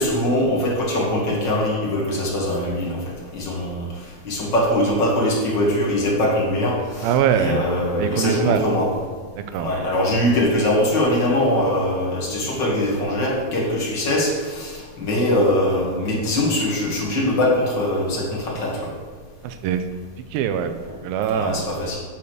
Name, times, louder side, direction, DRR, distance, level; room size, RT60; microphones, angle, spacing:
voice 1, 0.0-3.0 3.3-3.8 4.2-8.9 9.6-18.9 21.3-22.0, left 1 dB, 35° left, -4 dB, 2.3 m, -22 dB
voice 2, 7.0-7.6 8.0-8.7 9.5-9.7 19.4-19.8 20.3-20.7 21.0-21.6, right 8 dB, 85° right, 8 dB, 2.4 m, -22 dB
8.5 x 6.7 x 6.6 m, 1.5 s
omnidirectional pair, 4.3 m